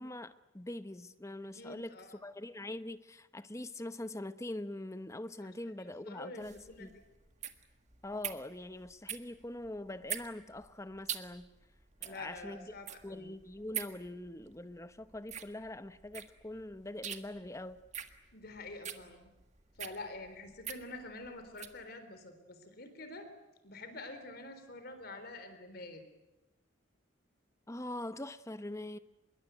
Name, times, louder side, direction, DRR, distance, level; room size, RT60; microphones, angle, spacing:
voice 1, 0.0-2.0 2.2-6.5 6.8-6.9 8.0-11.5 12.0-12.7 13.0-17.8 27.7-29.0, left 1 dB, 15° left, 0.9 m, -43 dB
voice 2, 1.5-2.2 5.4-7.0 12.0-13.3 18.3-19.3 19.8-23.3 23.6-26.0, left 2 dB, 50° left, 3.9 m, -47 dB
sound 1, 6.4-21.8, right 9 dB, 35° right, 1.6 m, -44 dB
25.0 x 22.0 x 9.3 m
head